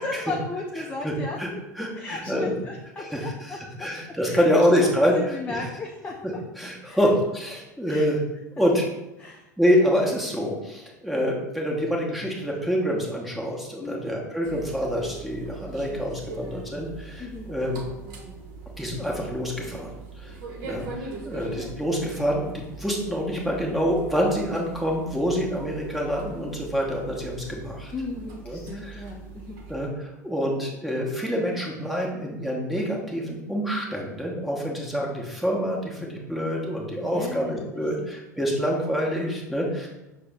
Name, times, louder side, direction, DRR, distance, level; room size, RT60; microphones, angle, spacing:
voice 1, 0.0-1.6 1.9-4.7 5.1-6.4 6.9-7.0 7.9-8.1 9.2-9.5 13.8-14.1 17.2-17.5 27.9-29.6 37.1-38.1, left 3 dB, 15° left, 0 dB, 0.4 m, -36 dB
voice 2, 1.8-2.5 3.0-5.1 5.5-5.6 6.2-8.2 8.6-8.9 9.6-17.8 18.8-19.9 20.2-20.3 20.6-22.5 22.8-27.9 28.5-29.0 29.7-39.9, equal, ahead, -2 dB, 0.9 m, -26 dB
sound 1, 14.4-29.9, right 3 dB, 50° right, 0.7 m, -41 dB
5.9 x 2.0 x 3.4 m, 0.98 s
figure-of-eight pair, 80°, 10 cm